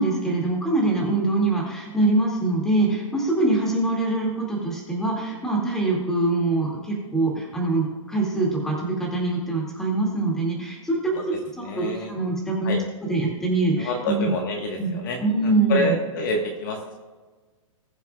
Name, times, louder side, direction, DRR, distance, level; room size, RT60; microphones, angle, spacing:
voice 1, 0.0-11.0 11.3-12.8 13.0-14.3 14.8-16.0, right 2 dB, 5° left, -2 dB, 2.1 m, -24 dB
voice 2, 11.6-12.1 12.6-12.8 13.8-16.9, left 1 dB, 35° left, 2 dB, 1.3 m, -28 dB
20.5 x 7.1 x 2.3 m, 1.3 s
hypercardioid pair, 165°, 17 cm